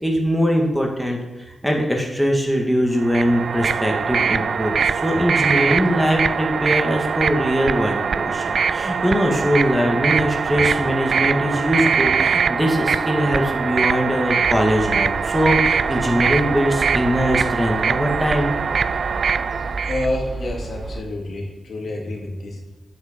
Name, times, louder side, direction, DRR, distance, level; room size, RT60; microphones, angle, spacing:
voice 1, 0.0-18.5, equal, ahead, 0 dB, 1.9 m, -21 dB
sound 1, 3.0-20.1, right 6 dB, 65° right, 0.4 m, -22 dB
sound 2, 14.4-21.0, right 3 dB, 45° right, 1.1 m, -33 dB
voice 2, 19.3-22.7, left 1 dB, 65° left, -1 dB, 2.7 m, -29 dB
9.8 x 8.7 x 5.3 m, 1.0 s
wide cardioid pair, 100°, 0 cm